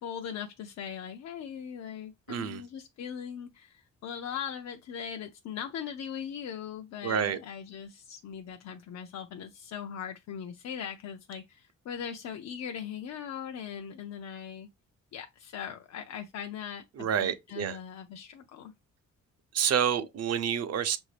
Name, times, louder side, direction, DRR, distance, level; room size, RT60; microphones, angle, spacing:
voice 1, 0.0-14.7 15.1-18.7, left 8 dB, 60° left, 0.5 m, -40 dB
voice 2, 2.3-2.6 7.0-7.4 17.0-17.8 19.5-21.0, right 8 dB, 55° right, 0.6 m, -28 dB
5.6 x 2.6 x 3.2 m
cardioid pair, 90°, 30 cm